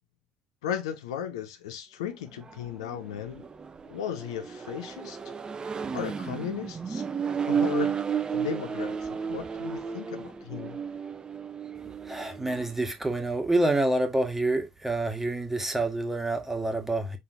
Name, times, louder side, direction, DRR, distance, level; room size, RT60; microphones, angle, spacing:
voice 1, 0.6-3.4 3.9-5.2 5.9-7.0 7.5-8.0 8.3-10.8, left 9 dB, 70° left, 0.6 m, -36 dB
Accelerating revving vroom, 2.3-12.8, right 7 dB, 25° right, 0.6 m, -33 dB
voice 2, 12.1-17.2, right 2 dB, 10° right, 1.5 m, -27 dB
5.3 x 3.8 x 2.6 m
figure-of-eight pair, 55°, 3 cm